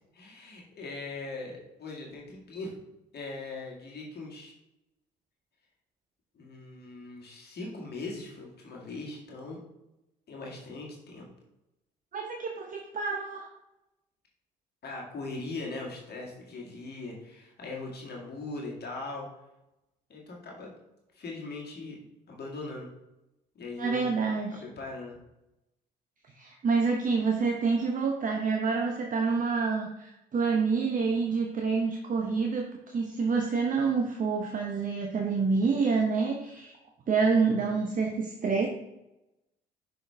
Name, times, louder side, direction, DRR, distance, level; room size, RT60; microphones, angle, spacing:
voice 1, 0.1-2.7 3.1-4.5 6.3-9.6 10.3-11.3 14.8-19.3 20.1-20.7 21.1-22.9 23.6-24.1 24.5-25.2, left 3 dB, 55° left, -2 dB, 1.9 m, -40 dB
voice 2, 12.1-13.5 23.8-24.5 26.4-36.7 37.1-38.7, right 4 dB, 45° right, 2 dB, 0.9 m, -27 dB
6.2 x 4.8 x 3.4 m, 0.93 s
hypercardioid pair, 55°, 20 cm